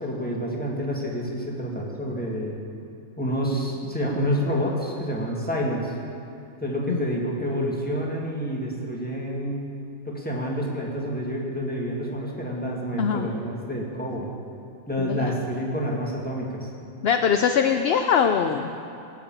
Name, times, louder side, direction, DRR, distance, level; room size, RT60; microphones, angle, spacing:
voice 1, 0.0-2.6 3.2-5.9 6.6-9.6 10.1-14.3 14.9-16.7, equal, 5° left, -3 dB, 1.8 m, -28 dB
voice 2, 15.0-15.3 17.0-18.7, left 7 dB, 65° left, 7 dB, 0.6 m, -22 dB
16.5 x 7.0 x 7.5 m, 2.6 s
omnidirectional pair, 1.5 m